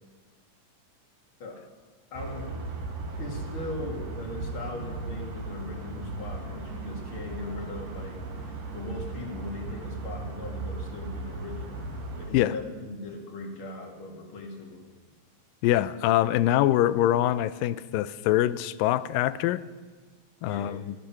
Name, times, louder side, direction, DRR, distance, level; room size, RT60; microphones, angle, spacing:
voice 1, 2.1-2.6 3.2-14.9 20.4-20.8, left 2 dB, 40° left, 2 dB, 2.6 m, -39 dB
sound 1, 2.1-12.3, right 3 dB, 55° right, 2.7 m, -37 dB
voice 2, 15.6-19.6 20.4-20.9, left 13 dB, 90° left, 16 dB, 2.3 m, -24 dB
18.0 x 14.0 x 5.7 m, 1.4 s
omnidirectional pair, 3.9 m